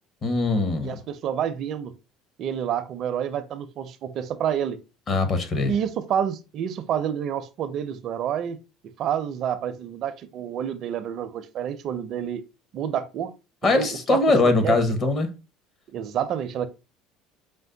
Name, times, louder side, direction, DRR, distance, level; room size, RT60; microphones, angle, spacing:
voice 1, 0.2-1.0 5.1-5.8 13.6-15.3, left 3 dB, 35° left, 0.9 m, -22 dB
voice 2, 0.8-1.9 2.4-4.8 5.6-8.6 9.0-12.4 12.7-13.3 13.6-14.2 14.4-14.8 15.9-16.7, right 9 dB, 55° right, 0.5 m, -28 dB
5.1 x 2.1 x 3.8 m
cardioid pair, 115°, 0 cm